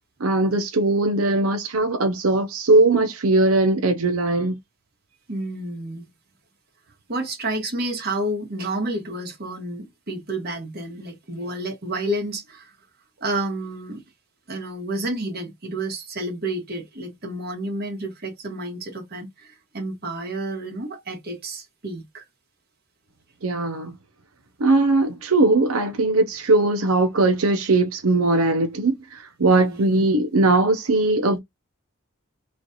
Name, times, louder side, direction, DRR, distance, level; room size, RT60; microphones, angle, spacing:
voice 1, 0.2-4.6 23.4-23.9 24.6-31.4, right 2 dB, 85° right, 0.7 m, -20 dB
voice 2, 5.3-6.1 7.1-12.7 13.2-14.0 14.5-22.2 29.5-29.9, right 1 dB, 45° right, 1.3 m, -30 dB
3.2 x 2.5 x 3.9 m
head